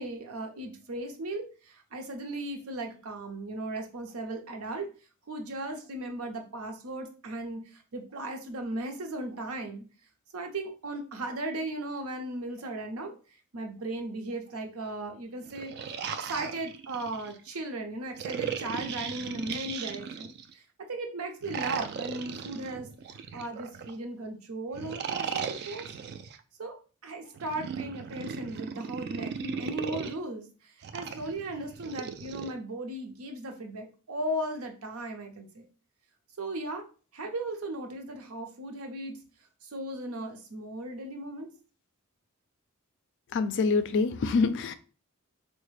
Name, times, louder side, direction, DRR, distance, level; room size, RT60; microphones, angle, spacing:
voice 1, 0.0-4.9 5.3-9.8 10.3-13.1 13.5-15.7 16.2-20.6 20.9-22.9 23.3-25.9 26.6-26.8 27.0-35.7 36.4-36.8 37.1-39.2 39.6-41.5, right 1 dB, 80° right, 0.7 m, -37 dB
sound 1, 15.4-17.4 18.2-20.5 21.4-23.9 24.7-26.4 27.3-30.1 30.8-32.5, right 6 dB, 50° right, 0.3 m, -37 dB
voice 2, 43.3-44.8, left 4 dB, 60° left, 0.4 m, -25 dB
3.9 x 2.1 x 3.2 m
head